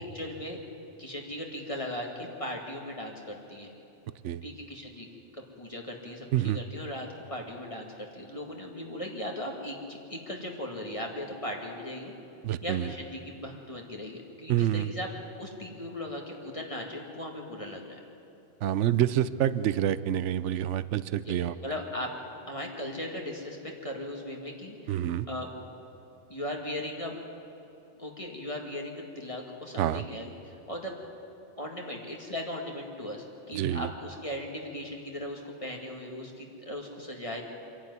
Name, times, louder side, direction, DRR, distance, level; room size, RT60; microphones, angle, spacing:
voice 1, 0.1-0.6 1.0-3.7 4.4-5.1 5.3-12.2 12.6-15.1 15.4-18.0 21.3-22.1 22.5-25.5 26.3-27.2 28.0-30.9 31.6-37.4, left 1 dB, 30° left, 0 dB, 2.3 m, -38 dB
voice 2, 12.4-12.9 14.5-14.9 18.6-21.5 24.9-25.3 29.8-30.0 33.5-33.9, right 11 dB, 80° right, 15 dB, 1.0 m, -27 dB
26.0 x 11.5 x 9.6 m, 2.8 s
omnidirectional pair, 1.2 m